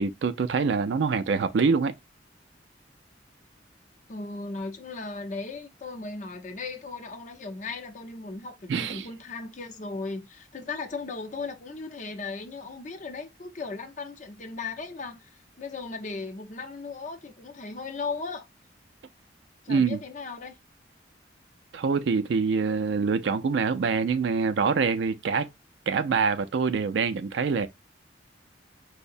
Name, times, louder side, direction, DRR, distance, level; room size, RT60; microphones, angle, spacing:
voice 1, 0.0-1.9 8.7-9.1 19.7-20.0 21.7-25.5 25.9-27.7, right 5 dB, 70° right, 0.4 m, -25 dB
voice 2, 4.1-18.5 19.6-20.6, left 3 dB, 40° left, 0.6 m, -37 dB
4.6 x 2.1 x 2.5 m
head